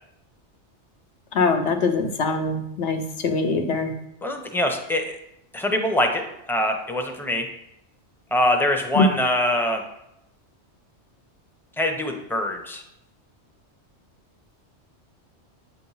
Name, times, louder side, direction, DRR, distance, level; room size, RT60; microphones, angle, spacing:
voice 1, 1.3-3.9 9.0-9.1, left 4 dB, 80° left, 4 dB, 1.2 m, -22 dB
voice 2, 4.2-5.2 5.5-7.5 8.3-9.8 11.8-12.8, left 1 dB, 5° left, 3 dB, 0.5 m, -24 dB
8.4 x 3.0 x 5.5 m, 0.82 s
omnidirectional pair, 1.2 m